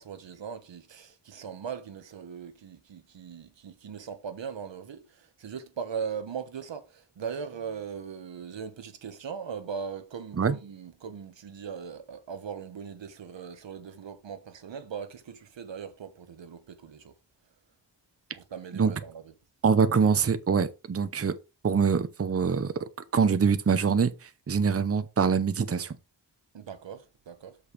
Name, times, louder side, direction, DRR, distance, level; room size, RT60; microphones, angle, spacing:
voice 1, 0.0-17.1 18.3-19.3 26.5-27.6, right 6 dB, 85° right, 1.2 m, -39 dB
voice 2, 19.6-21.4 21.6-22.7 23.1-26.0, right 6 dB, 35° right, 0.7 m, -24 dB
6.5 x 5.2 x 5.1 m
wide cardioid pair, 90°, 43 cm